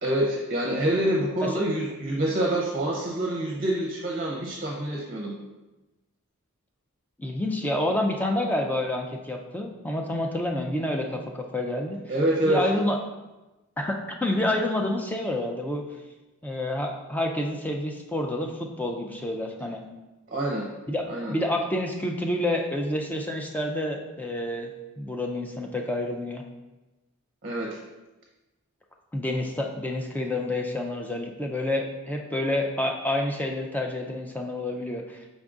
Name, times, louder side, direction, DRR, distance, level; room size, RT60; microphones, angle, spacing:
voice 1, 0.0-5.3 12.1-12.6 20.3-20.7 21.1-21.3 27.4-27.8, right 1 dB, 40° right, -2 dB, 0.6 m, -26 dB
voice 2, 7.2-12.0 12.5-13.0 13.8-15.8 16.4-19.8 20.9-24.7 25.0-26.4 29.1-35.2, left 1 dB, 10° left, 2 dB, 0.3 m, -28 dB
5.2 x 3.7 x 2.4 m, 1.1 s
head